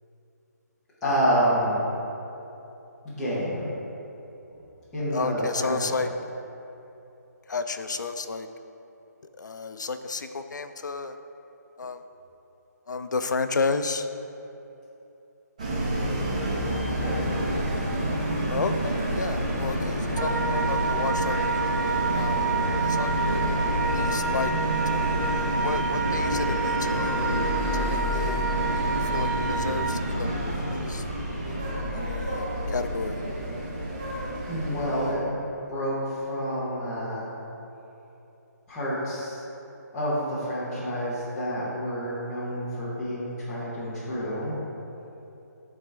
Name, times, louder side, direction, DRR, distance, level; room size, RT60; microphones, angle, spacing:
voice 1, 1.0-1.8 3.0-3.7 4.9-5.8 17.0-17.1 34.5-35.3 35.7-37.3 38.7-39.4 39.9-44.5, equal, 5° left, -13 dB, 1.0 m, -28 dB
voice 2, 5.1-6.1 7.5-8.5 9.4-11.2 11.8-12.0 12.9-14.1 16.6-17.0 18.5-22.4 22.8-23.5 23.8-24.5 24.9-27.3 27.7-31.0 31.4-33.2, left 4 dB, 85° left, 9 dB, 0.5 m, -32 dB
sound 1, 15.6-35.1, right 1 dB, 25° right, 0.8 m, -28 dB
Wind instrument woodwind instrument, 20.1-30.0, right 4 dB, 85° right, 0.8 m, -29 dB
10.5 x 4.1 x 3.4 m, 3.0 s
hypercardioid pair, 175°, 10 cm